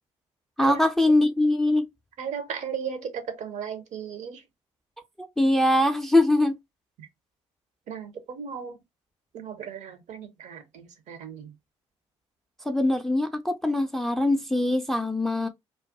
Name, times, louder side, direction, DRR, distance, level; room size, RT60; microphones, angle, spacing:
voice 1, 0.6-1.9 5.2-6.6 12.6-15.5, left 1 dB, ahead, 0.4 m, -22 dB
voice 2, 2.2-4.4 7.9-8.8 9.3-11.5, right 7 dB, 50° right, 0.6 m, -36 dB
2.3 x 2.2 x 2.5 m
figure-of-eight pair, 45°, 15 cm